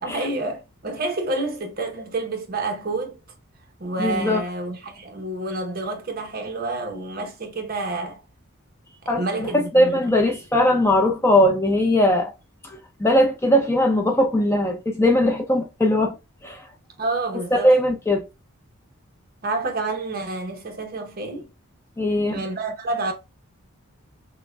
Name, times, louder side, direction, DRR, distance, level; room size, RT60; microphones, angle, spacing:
voice 1, 0.0-3.2 3.8-8.2 9.0-10.1 17.0-17.8 19.4-21.5 22.3-23.1, right 2 dB, 40° right, 0.8 m, -29 dB
voice 2, 4.0-4.4 9.1-12.3 13.0-16.1 16.4-16.6 17.5-18.2 22.0-22.4, left 1 dB, 10° left, 0.5 m, -19 dB
5.9 x 2.1 x 2.3 m
head